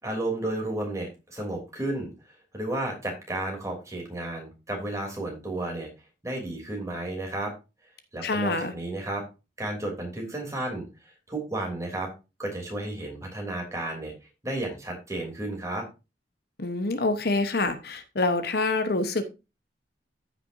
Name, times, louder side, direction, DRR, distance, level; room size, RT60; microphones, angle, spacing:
voice 1, 0.0-2.1 2.5-5.9 6.2-7.5 8.1-9.2 9.6-10.9 11.3-12.1 12.4-14.1 14.4-15.8, right 1 dB, 20° right, 0 dB, 3.1 m, -32 dB
voice 2, 8.2-8.7 16.6-19.2, left 2 dB, 60° left, 9 dB, 1.0 m, -26 dB
14.0 x 5.9 x 2.6 m, 0.27 s
head